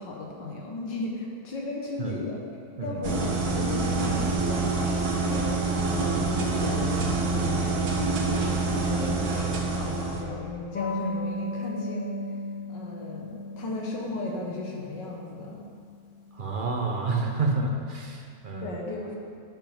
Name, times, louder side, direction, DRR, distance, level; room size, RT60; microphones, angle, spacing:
voice 1, 0.0-2.5 2.8-7.9 8.3-12.2 12.7-15.6 18.6-19.2, left 2 dB, 85° left, -2 dB, 2.0 m, -35 dB
sound 1, 3.0-10.2, right 3 dB, 60° right, 1.6 m, -26 dB
sound 2, 10.7-16.9, left 2 dB, 40° left, 0.8 m, -36 dB
voice 2, 16.3-18.7, right 3 dB, 40° right, 1 dB, 0.8 m, -29 dB
11.5 x 8.7 x 3.5 m, 2.2 s
omnidirectional pair, 1.9 m